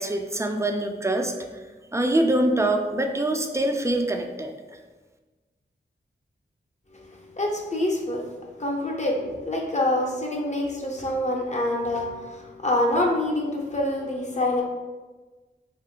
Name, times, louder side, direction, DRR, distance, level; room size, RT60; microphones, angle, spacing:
voice 1, 0.0-1.3 1.9-4.5, right 1 dB, 15° right, 4 dB, 0.4 m, -24 dB
voice 2, 7.4-8.2 8.6-14.6, left 1 dB, 35° left, -2 dB, 0.6 m, -26 dB
2.6 x 2.3 x 3.6 m, 1.3 s
cardioid pair, 50°, 20 cm